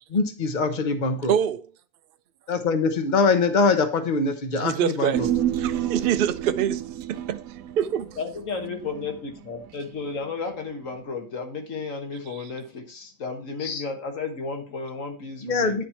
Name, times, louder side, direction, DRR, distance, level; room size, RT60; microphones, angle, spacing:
voice 1, 0.1-1.3 2.5-5.3 13.6-13.8 15.4-15.8, left 4 dB, 40° left, 1.0 m, -23 dB
voice 2, 1.3-1.7 4.5-5.3 5.6-6.8 7.1-7.4 7.8-8.2, right 9 dB, 60° right, 0.6 m, -25 dB
Human voice, 5.1-9.7 10.0-10.1, right 11 dB, 80° right, 1.0 m, -29 dB
voice 3, 8.2-15.8, left 4 dB, 65° left, 1.8 m, -33 dB
9.9 x 4.3 x 4.4 m
omnidirectional pair, 1.4 m